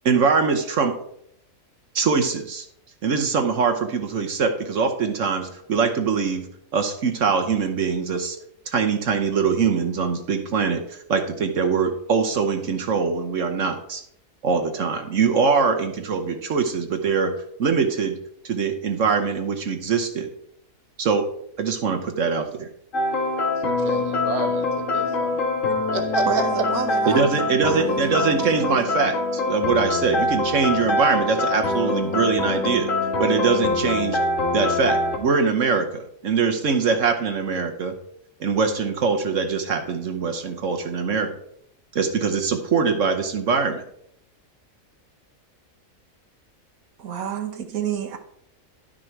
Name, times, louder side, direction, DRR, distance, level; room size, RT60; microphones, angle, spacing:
voice 1, 0.0-0.9 1.9-2.7 3.0-6.4 6.7-8.4 8.7-14.0 14.4-17.3 17.6-18.1 18.4-20.3 21.0-21.3 21.6-22.7 27.1-32.9 33.2-34.2 34.5-37.9 38.4-41.3 41.9-43.8, right 5 dB, 65° right, 1.2 m, -23 dB
sound 1, 22.9-35.2, left 2 dB, 65° left, 1.9 m, -24 dB
voice 2, 23.6-25.4 25.9-26.3, right 3 dB, 25° right, 1.2 m, -31 dB
voice 3, 26.2-28.9 47.0-48.2, right 7 dB, 85° right, 1.6 m, -30 dB
11.5 x 6.4 x 4.5 m
omnidirectional pair, 1.5 m